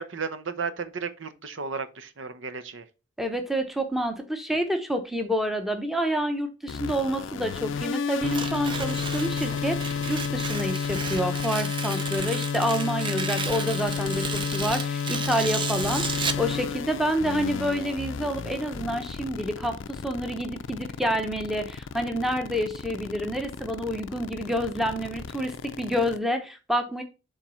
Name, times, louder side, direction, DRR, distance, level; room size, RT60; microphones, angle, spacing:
voice 1, 0.0-2.8, right 5 dB, 85° right, 0.8 m, -34 dB
voice 2, 3.2-27.0, equal, ahead, 0.9 m, -28 dB
sound 1, 6.7-26.2, left 6 dB, 85° left, 0.4 m, -31 dB
Tearing, 8.2-16.5, right 5 dB, 25° right, 0.5 m, -34 dB
7.3 x 3.8 x 5.4 m
head